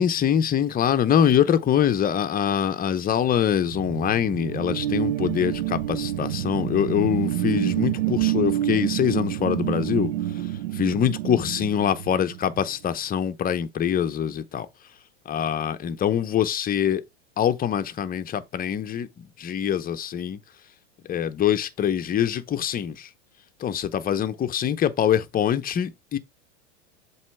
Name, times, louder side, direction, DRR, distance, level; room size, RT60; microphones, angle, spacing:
voice 1, 0.0-10.1 10.7-14.7 15.3-17.0 17.4-20.4 21.1-23.1 23.6-26.2, left 9 dB, 25° left, 0.8 m, -24 dB
sound 1, 3.5-12.6, right 13 dB, 85° right, 0.6 m, -28 dB
7.5 x 3.2 x 4.5 m
hypercardioid pair, 105°, 36 cm